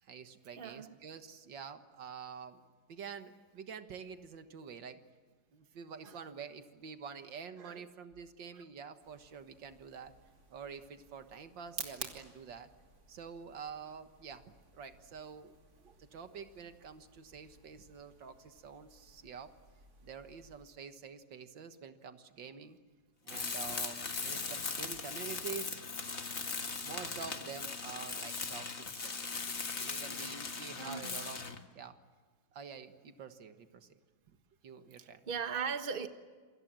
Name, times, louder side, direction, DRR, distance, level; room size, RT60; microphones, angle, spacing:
voice 1, 0.0-5.0 5.5-10.1 10.5-12.7 13.1-14.4 14.7-15.6 16.0-19.5 20.0-22.8 23.2-25.8 26.8-29.2 29.7-31.4 31.7-32.0 32.5-34.0 34.3-34.4 34.6-35.2, right 6 dB, 85° right, 9 dB, 2.1 m, -47 dB
voice 2, 0.6-0.9 6.0-6.2 7.6-7.8 8.5-8.6 15.8-15.9 30.8-31.1 35.0-36.1, right 6 dB, 30° right, 8 dB, 1.5 m, -39 dB
sound 1, 9.0-20.6, right 3 dB, 55° right, 3.4 m, -52 dB
Tools, 23.3-31.7, left 4 dB, 40° left, 1.9 m, -39 dB
27.5 x 25.5 x 7.6 m, 1.5 s
omnidirectional pair, 2.0 m